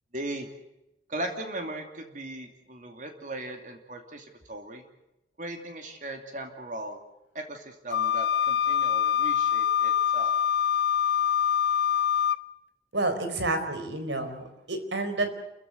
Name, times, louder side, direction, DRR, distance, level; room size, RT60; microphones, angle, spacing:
voice 1, 0.1-0.5 1.1-4.8 5.4-7.0 7.3-10.3, right 1 dB, 45° right, 4 dB, 2.7 m, -38 dB
Wind instrument woodwind instrument, 7.9-12.4, left 9 dB, 85° left, 0.7 m, -24 dB
voice 2, 12.9-15.3, right 2 dB, 85° right, 8 dB, 4.4 m, -29 dB
29.5 x 15.0 x 7.9 m, 0.91 s
head